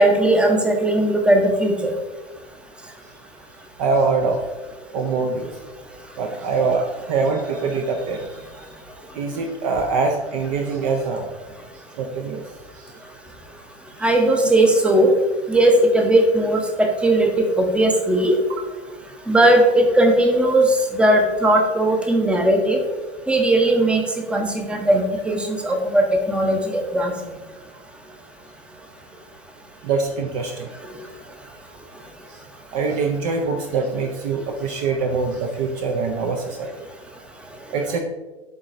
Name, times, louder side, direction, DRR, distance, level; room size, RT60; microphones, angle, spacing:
voice 1, 0.0-1.9 14.0-15.1 15.5-18.4 19.3-20.7 20.9-22.8 23.3-24.0 24.3-27.1, right 1 dB, 5° right, 3 dB, 0.8 m, -18 dB
voice 2, 3.8-4.4 4.9-5.6 6.2-8.2 9.1-11.3 12.0-12.4 12.7-12.9 29.8-30.7 32.3-32.4 32.7-36.7 37.7-38.0, right 4 dB, 40° right, 3 dB, 0.7 m, -23 dB
11.5 x 3.9 x 2.6 m, 1.2 s
figure-of-eight pair, 105°, 32 cm